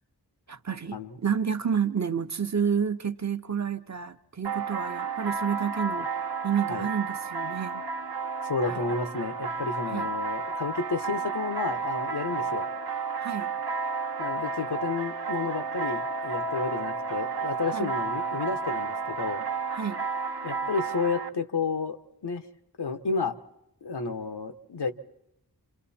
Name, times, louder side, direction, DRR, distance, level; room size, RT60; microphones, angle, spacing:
voice 1, 0.5-7.8 8.6-8.8 9.8-10.1 13.2-13.5 17.7-17.9 19.7-20.0, right 7 dB, 45° right, 0.8 m, -30 dB
sound 1, 4.4-21.3, right 4 dB, 75° right, 1.0 m, -32 dB
voice 2, 8.4-12.7 14.2-19.4 20.4-22.0 22.2-22.4 22.8-23.3 23.8-24.9, left 4 dB, 90° left, 1.2 m, -31 dB
28.0 x 27.5 x 4.3 m
wide cardioid pair, 80°, 39 cm